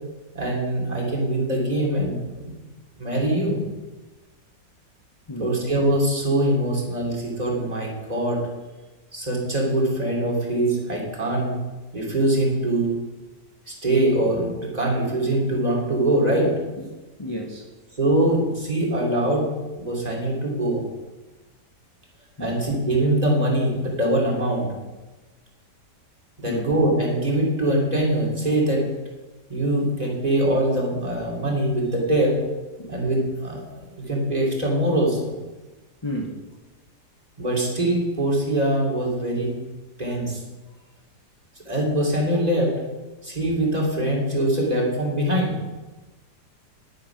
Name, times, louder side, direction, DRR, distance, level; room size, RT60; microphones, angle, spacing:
voice 1, 0.3-2.5 3.0-3.6 5.4-8.4 9.1-11.5 11.9-12.9 13.7-16.5 18.0-19.5 19.8-20.8 22.4-24.7 26.4-28.9 29.5-32.4 32.9-33.6 34.1-35.3 37.4-39.5 40.0-40.4 41.6-42.7 43.2-45.6, right 1 dB, 25° right, -2 dB, 2.9 m, -23 dB
voice 2, 17.2-17.7 22.4-22.6 26.5-26.7 32.8-33.0 36.0-36.4, equal, 20° left, 0 dB, 0.9 m, -32 dB
10.5 x 9.5 x 5.9 m, 1.2 s
omnidirectional pair, 1.8 m